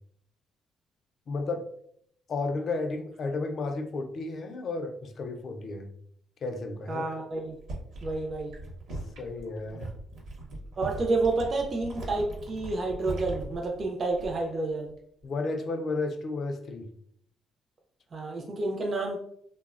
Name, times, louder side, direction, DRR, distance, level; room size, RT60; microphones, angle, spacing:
voice 1, 1.3-1.7 2.3-5.9 6.4-7.0 9.2-9.9 15.2-16.9, left 3 dB, 45° left, 5 dB, 0.3 m, -32 dB
voice 2, 6.9-7.5 8.0-8.5 10.8-14.9 18.1-19.2, right 3 dB, 30° right, 0 dB, 0.3 m, -29 dB
sound 1, 7.4-14.6 14.9-15.2, right 2 dB, 65° right, 0.7 m, -40 dB
3.0 x 2.0 x 2.3 m, 0.67 s
cardioid pair, 155°, 0 cm